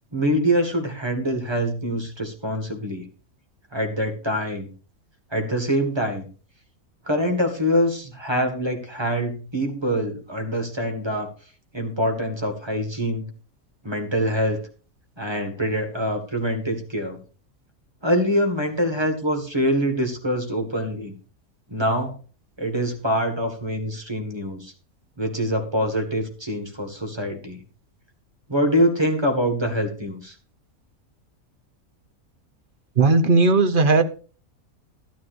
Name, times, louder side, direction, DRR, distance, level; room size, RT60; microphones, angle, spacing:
voice 1, 0.1-3.1 3.7-4.7 5.3-6.3 7.0-11.3 11.7-13.3 13.8-14.6 15.2-17.2 18.0-21.1 21.7-22.2 22.6-24.7 25.2-27.6 28.5-30.3, equal, 20° right, 4 dB, 1.7 m, -24 dB
voice 2, 33.0-34.0, right 3 dB, 45° right, 7 dB, 0.9 m, -16 dB
12.5 x 12.5 x 2.6 m, 0.37 s
omnidirectional pair, 1.5 m